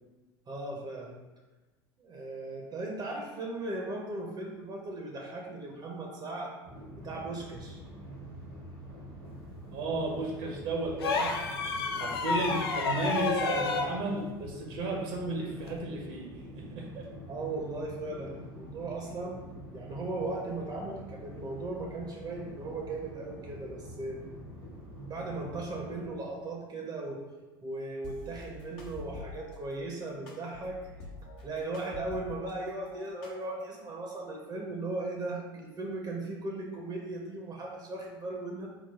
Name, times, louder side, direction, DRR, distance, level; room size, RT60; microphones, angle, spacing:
voice 1, 0.5-1.1 2.0-6.5 6.9-7.8 17.3-19.4 19.7-24.2 25.0-27.2 27.6-30.8 31.4-38.7, right 2 dB, 35° right, 0 dB, 0.7 m, -37 dB
sound 1, 6.6-26.1, equal, 80° right, 1.4 m, -46 dB
voice 2, 9.7-11.3 11.9-17.0, right 2 dB, 60° right, -1 dB, 0.9 m, -34 dB
sound 2, 11.0-14.0 15.6-15.8, left 4 dB, 80° left, 0.4 m, -30 dB
sound 3, 28.0-29.6 30.3-32.5 32.9-33.8, left 3 dB, 60° left, 0.9 m, -46 dB
3.9 x 2.2 x 4.1 m, 1.2 s
hypercardioid pair, 75°, 13 cm